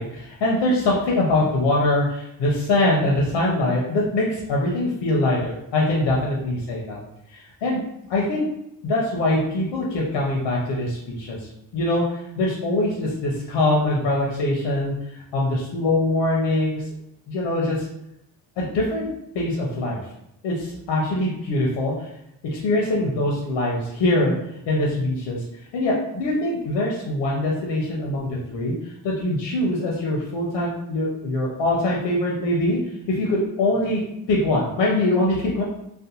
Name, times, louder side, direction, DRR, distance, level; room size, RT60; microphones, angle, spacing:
voice 1, 0.0-7.0 7.3-7.8 8.1-8.4 8.8-16.9 17.3-17.9 18.6-19.0 19.3-20.0 20.4-22.1 22.5-24.3 24.7-32.8 33.1-34.0 34.3-35.6, left 1 dB, 90° left, -3 dB, 0.6 m, -23 dB
2.5 x 2.1 x 2.8 m, 0.83 s
cardioid pair, 70°, 42 cm